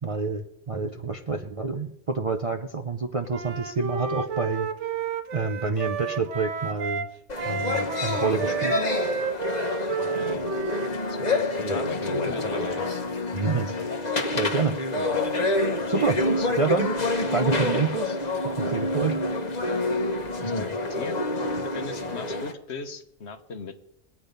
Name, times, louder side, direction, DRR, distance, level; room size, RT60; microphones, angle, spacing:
voice 1, 0.0-4.7 5.3-7.1 7.5-8.8 13.3-13.7 14.4-14.8 15.9-16.2 16.6-16.9 17.3-18.2 18.6-19.2, right 4 dB, 40° right, 5 dB, 0.5 m, -27 dB
Wind instrument woodwind instrument, 3.3-7.1 7.4-11.5, right 6 dB, 75° right, 1.1 m, -31 dB
sound 1, 7.3-22.5, left 2 dB, 35° left, 1.2 m, -27 dB
voice 2, 9.7-10.5 11.1-13.0 13.5-14.0 15.7-15.8 16.4-16.8 20.4-21.2 21.7-23.8, left 4 dB, 60° left, 8 dB, 1.2 m, -38 dB
21.0 x 8.4 x 5.2 m, 0.82 s
omnidirectional pair, 1.3 m